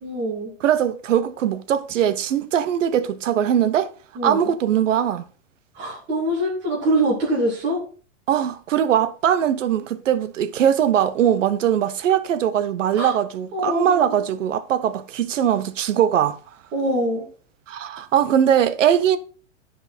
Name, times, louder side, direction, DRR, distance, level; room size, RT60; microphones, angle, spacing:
voice 1, 0.0-0.5 4.2-4.4 5.7-7.8 12.9-13.1 13.5-14.1 16.7-17.2, right 1 dB, 30° right, 2.9 m, -24 dB
voice 2, 0.6-3.9 4.2-5.2 8.3-16.4 17.7-19.2, right 9 dB, 90° right, 0.9 m, -21 dB
10.0 x 5.4 x 4.3 m
hypercardioid pair, 140°, 36 cm